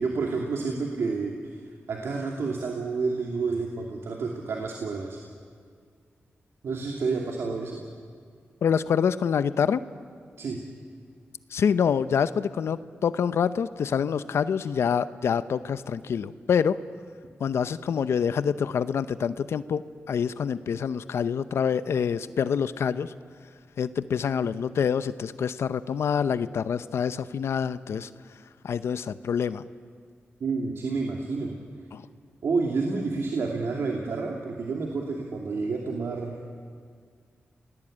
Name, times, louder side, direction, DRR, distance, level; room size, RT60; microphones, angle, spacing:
voice 1, 0.0-1.6 1.9-5.2 6.6-7.8 10.4-10.6 30.4-31.5 32.4-36.4, right 4 dB, 75° right, 0 dB, 2.6 m, -29 dB
voice 2, 8.6-9.8 11.5-16.8 17.4-19.8 20.1-23.1 23.8-28.1 28.6-29.6 31.9-32.0, left 7 dB, 80° left, 14 dB, 0.7 m, -26 dB
28.5 x 18.5 x 8.8 m, 2.1 s
cardioid pair, 65°, 4 cm